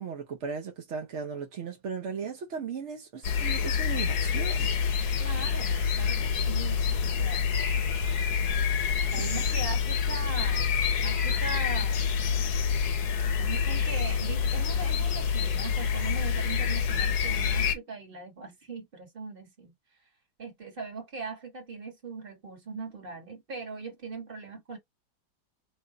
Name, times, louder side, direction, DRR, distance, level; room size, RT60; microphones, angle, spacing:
voice 1, 0.0-4.7 8.9-9.4, right 6 dB, 65° right, 0.7 m, -37 dB
sound 1, 3.2-17.7, left 6 dB, 65° left, 1.2 m, -27 dB
voice 2, 5.2-7.5 9.1-10.7 11.0-12.1 13.4-19.7 20.4-24.8, right 3 dB, 30° right, 1.4 m, -40 dB
3.2 x 2.3 x 3.8 m
omnidirectional pair, 2.0 m